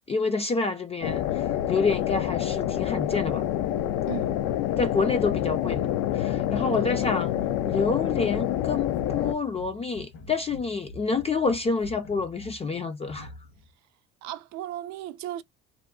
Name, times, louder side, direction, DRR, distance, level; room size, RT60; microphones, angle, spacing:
voice 1, 0.1-3.5 4.8-5.9 6.1-7.3 7.6-13.3, left 4 dB, 20° left, 0.3 m, -28 dB
sound 1, 1.0-9.3, left 12 dB, 80° left, 0.4 m, -27 dB
sound 2, 7.3-13.7, equal, 60° left, 1.0 m, -46 dB
voice 2, 14.2-15.4, right 13 dB, 65° right, 0.5 m, -36 dB
2.5 x 2.1 x 2.3 m
cardioid pair, 100°, 30 cm